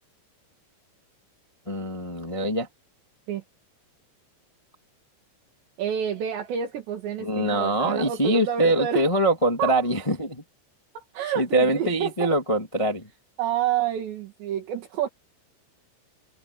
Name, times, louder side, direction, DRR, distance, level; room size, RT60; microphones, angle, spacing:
voice 1, 1.6-2.7 7.2-10.4 11.3-13.1, right 1 dB, 20° left, 0.9 m, -23 dB
voice 2, 5.8-9.0 9.6-9.7 11.0-12.3 13.4-15.1, right 9 dB, 65° right, 4.4 m, -28 dB
omnidirectional pair, 5.5 m